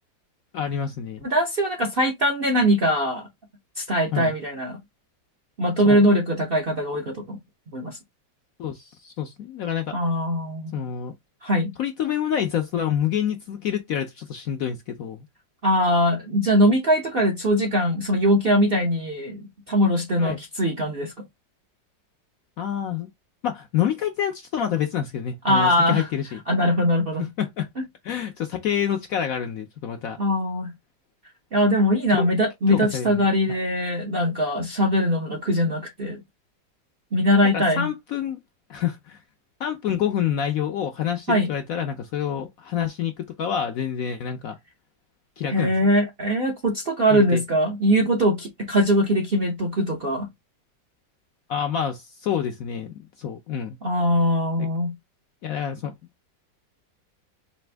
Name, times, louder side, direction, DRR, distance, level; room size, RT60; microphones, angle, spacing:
voice 1, 0.5-1.2 4.1-4.3 5.8-6.0 8.6-10.0 10.7-11.1 11.8-15.3 20.2-20.4 22.6-23.1 23.4-26.4 27.4-27.7 28.0-30.2 32.2-32.3 32.7-33.6 37.5-38.4 38.7-39.2 39.6-44.6 45.4-45.7 47.1-47.4 51.5-53.8 54.6-54.7 55.4-55.9, left 9 dB, 70° left, 0.8 m, -27 dB
voice 2, 1.2-3.3 3.8-4.8 5.6-7.4 7.7-8.0 9.9-10.8 11.4-11.7 15.6-21.1 25.4-26.1 26.5-27.3 30.2-30.7 31.5-36.2 37.1-37.9 41.3-41.5 45.5-50.3 53.8-54.9, equal, 50° right, 0.7 m, -21 dB
4.2 x 2.5 x 3.3 m
omnidirectional pair, 1.9 m